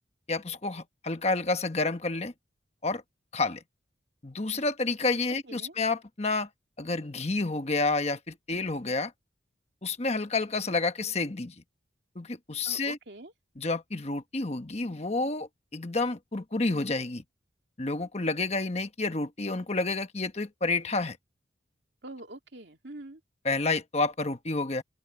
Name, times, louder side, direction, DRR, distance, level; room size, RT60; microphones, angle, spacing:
voice 1, 0.3-2.3 2.8-3.0 3.3-3.6 4.2-6.5 6.8-9.1 9.8-11.5 12.1-13.0 13.6-17.2 17.8-21.2 23.4-24.8, left 3 dB, 35° left, 1.2 m, -29 dB
voice 2, 12.6-13.3 22.0-23.2, right 1 dB, 65° right, 2.7 m, -44 dB
open air
head